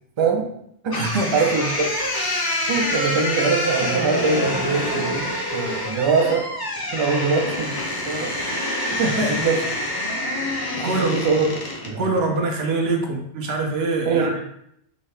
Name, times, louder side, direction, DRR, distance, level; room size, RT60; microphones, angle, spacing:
voice 1, 0.2-0.5 0.8-1.0 1.3-1.9 2.7-6.5 6.9-7.8 8.0-8.4 8.9-9.0 9.3-9.6 10.8-11.5 11.8-12.1 14.1-14.4, right 4 dB, 45° right, 2 dB, 0.4 m, -23 dB
sound 1, 0.9-11.9, equal, 30° left, 0.5 m, -26 dB
voice 2, 0.9-1.5 9.0-9.4 10.8-11.2 12.0-14.4, right 2 dB, 70° right, 2 dB, 1.0 m, -24 dB
3.9 x 2.7 x 3.2 m, 0.74 s
omnidirectional pair, 1.1 m